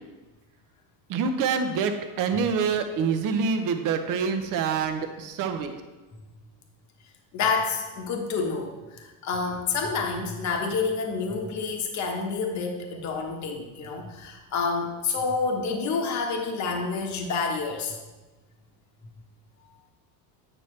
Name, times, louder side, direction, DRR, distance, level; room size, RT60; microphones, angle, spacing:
voice 1, 1.1-5.8, right 5 dB, 45° right, 7 dB, 0.7 m, -26 dB
voice 2, 7.3-18.0, left 4 dB, 35° left, 2 dB, 1.1 m, -28 dB
8.8 x 5.8 x 3.2 m, 1.2 s
cardioid pair, 145°, 46 cm